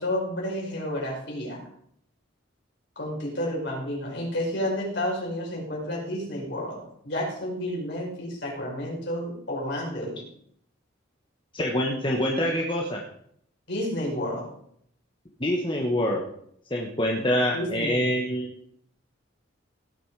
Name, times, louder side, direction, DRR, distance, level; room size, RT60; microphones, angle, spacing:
voice 1, 0.0-1.6 3.0-10.2 13.7-14.5 17.2-17.3 17.5-18.0, left 1 dB, 55° left, -2 dB, 5.3 m, -31 dB
voice 2, 11.5-13.0 15.4-16.3 16.7-18.5, equal, 25° left, -1 dB, 1.3 m, -25 dB
17.5 x 7.2 x 4.8 m, 0.68 s
head